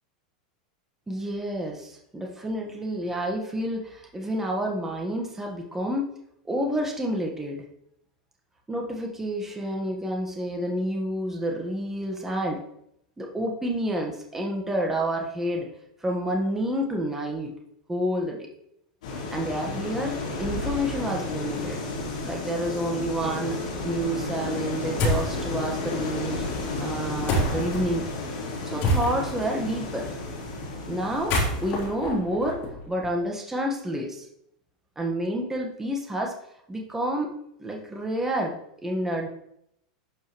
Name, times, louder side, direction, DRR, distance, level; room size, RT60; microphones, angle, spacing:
voice 1, 1.1-6.1 6.4-7.6 8.7-12.6 13.2-15.7 16.0-17.5 17.9-18.4 19.3-21.8 22.2-26.4 26.8-28.1 28.6-30.1 30.9-32.6 32.9-34.3 34.9-36.3 36.7-39.3, right 1 dB, 10° right, 0 dB, 1.5 m, -29 dB
sound 1, 19.0-31.9, left 3 dB, 80° left, 3.5 m, -32 dB
sound 2, 25.0-25.4 27.3-27.8 28.8-29.4 31.1-33.1, equal, 50° left, 3.3 m, -26 dB
11.0 x 5.5 x 3.2 m, 0.75 s
hypercardioid pair, 115°, 4 cm